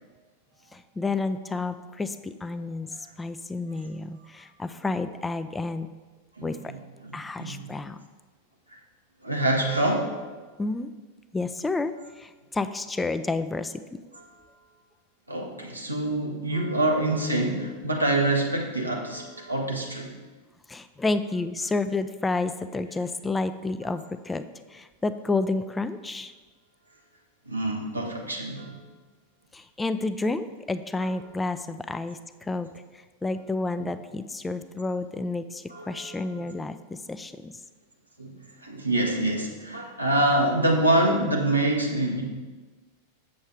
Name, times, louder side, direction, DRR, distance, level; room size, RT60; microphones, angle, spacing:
voice 1, 0.7-5.9 6.4-6.7 7.1-8.0 10.6-10.9 11.3-13.8 20.7-24.4 24.7-26.3 29.5-32.7 32.9-37.5, left 3 dB, 10° left, 11 dB, 0.4 m, -30 dB
voice 2, 6.4-7.7 9.2-10.3 15.3-20.1 27.5-28.8 33.8-33.9 35.7-36.5 38.2-42.2, right 1 dB, 85° right, -1 dB, 1.4 m, -26 dB
7.3 x 7.2 x 4.6 m, 1.3 s
figure-of-eight pair, 90°, 0 cm